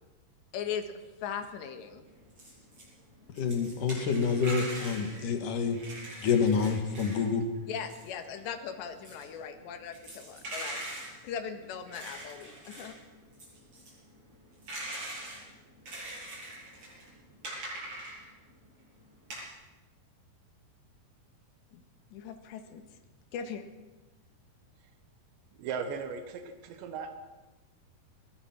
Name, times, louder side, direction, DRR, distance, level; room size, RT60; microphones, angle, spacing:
voice 1, 0.5-0.9 1.2-2.1 7.7-10.8 11.2-13.0 21.7-21.8 22.1-22.8 23.3-23.6, left 7 dB, 90° left, 7 dB, 3.8 m, -39 dB
sound 1, 2.1-2.9 3.1-7.3 7.5-18.5 19.0-19.5, right 1 dB, 30° right, 9.0 m, -42 dB
voice 2, 3.4-5.8 6.2-7.5, left 5 dB, 55° left, 6 dB, 3.1 m, -27 dB
voice 3, 25.6-26.2 26.8-27.2, right 6 dB, 85° right, 7 dB, 3.6 m, -35 dB
23.0 x 21.0 x 6.1 m, 1.1 s
omnidirectional pair, 4.9 m